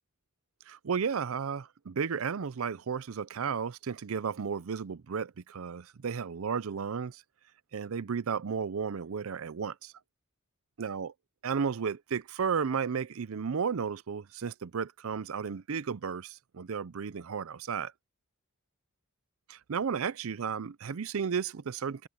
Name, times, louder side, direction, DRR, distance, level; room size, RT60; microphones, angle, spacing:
voice 1, 0.7-7.2 7.7-9.9 10.8-11.1 11.4-17.9 19.5-22.1, right 6 dB, 75° right, 0.5 m, -33 dB
head